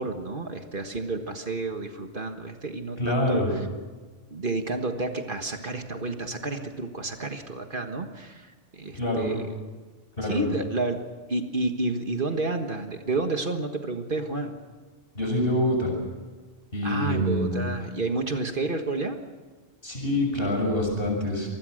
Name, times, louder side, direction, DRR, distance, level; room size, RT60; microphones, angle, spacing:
voice 1, 0.0-3.7 4.3-9.4 10.2-11.0 11.3-14.5 16.8-19.2, right 3 dB, 50° right, 5 dB, 1.7 m, -30 dB
voice 2, 3.0-3.5 9.0-9.3 10.2-10.4 15.1-15.9 16.7-17.5 19.8-21.5, left 1 dB, 55° left, 2 dB, 6.5 m, -25 dB
26.0 x 20.5 x 6.5 m, 1.3 s
omnidirectional pair, 1.2 m